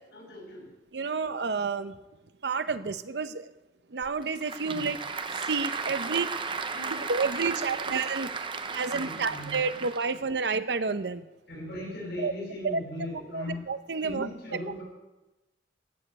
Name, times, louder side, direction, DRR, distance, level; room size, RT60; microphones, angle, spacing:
voice 1, 0.1-0.7 4.6-5.0 6.7-7.9 8.6-9.8 10.1-10.2 11.5-13.6 14.0-14.8, left 1 dB, 75° left, -1 dB, 5.8 m, -40 dB
voice 2, 0.9-2.0 2.4-3.5 3.9-5.0 5.3-6.3 7.1-8.3 8.7-11.2 12.2-12.3 12.6-12.8 13.3-14.3, right 4 dB, 70° right, 12 dB, 0.7 m, -30 dB
Applause / Crowd, 4.0-10.2, right 4 dB, 30° right, 0.7 m, -35 dB
15.0 x 6.9 x 8.8 m, 1.0 s
head